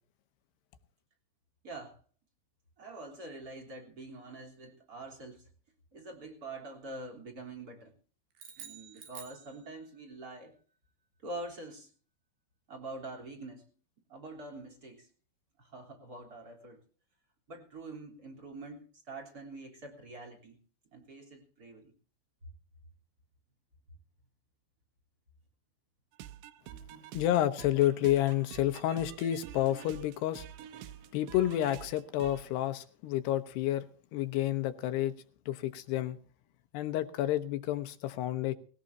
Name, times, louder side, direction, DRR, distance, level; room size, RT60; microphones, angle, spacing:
voice 1, 1.6-2.0 2.8-5.5 5.9-7.9 8.6-10.6 11.2-11.9 12.7-13.7 14.1-15.1 15.6-16.8 17.5-20.6 20.9-21.9 26.7-27.1, right 2 dB, 25° right, 1 dB, 3.3 m, -45 dB
sound 1, 8.4-10.1, right 8 dB, 60° right, 3.8 m, -50 dB
sound 2, 26.1-32.4, right 11 dB, 80° right, 2.9 m, -48 dB
voice 2, 27.1-30.5 31.1-33.9 34.1-35.1 35.5-36.2 36.7-38.5, left 13 dB, 75° left, 10 dB, 3.0 m, -30 dB
20.5 x 17.0 x 2.7 m, 0.41 s
omnidirectional pair, 5.2 m